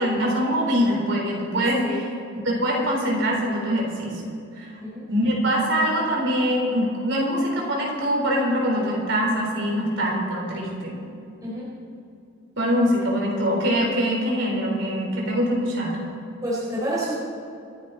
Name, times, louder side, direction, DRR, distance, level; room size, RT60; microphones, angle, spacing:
voice 1, 0.0-2.1 2.3-4.2 4.5-4.7 5.1-11.0 12.6-16.0, equal, 70° right, -1 dB, 4.3 m, -23 dB
voice 2, 11.4-11.7 16.4-17.1, equal, 20° right, -7 dB, 3.8 m, -28 dB
27.0 x 10.5 x 4.3 m, 2.6 s
head